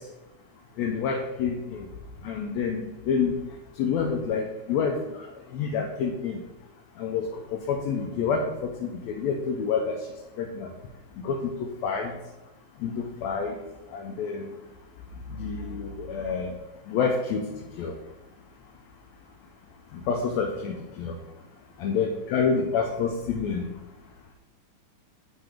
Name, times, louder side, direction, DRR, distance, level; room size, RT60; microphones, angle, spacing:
voice 1, 0.8-1.9 2.2-3.4 3.8-5.0 5.5-6.4 7.0-9.9 10.4-10.7 11.2-12.1 12.8-13.6 13.9-14.5 15.4-16.5 16.9-17.5 17.8-17.9 20.1-21.2 21.8-23.6, left 6 dB, 75° left, 2 dB, 1.8 m, -28 dB
9.1 x 4.0 x 5.0 m, 1.0 s
omnidirectional pair, 3.5 m